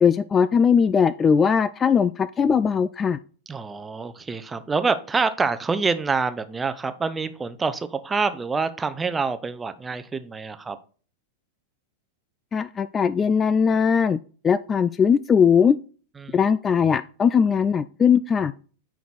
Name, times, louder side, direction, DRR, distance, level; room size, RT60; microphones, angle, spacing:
voice 1, 0.0-3.2 12.5-14.2 14.4-15.8 16.3-18.5, left 6 dB, 20° left, 16 dB, 0.3 m, -19 dB
voice 2, 3.5-10.8 16.2-16.3, right 4 dB, 15° right, 11 dB, 0.7 m, -26 dB
9.2 x 4.6 x 4.0 m, 0.39 s
figure-of-eight pair, 90°, 0 cm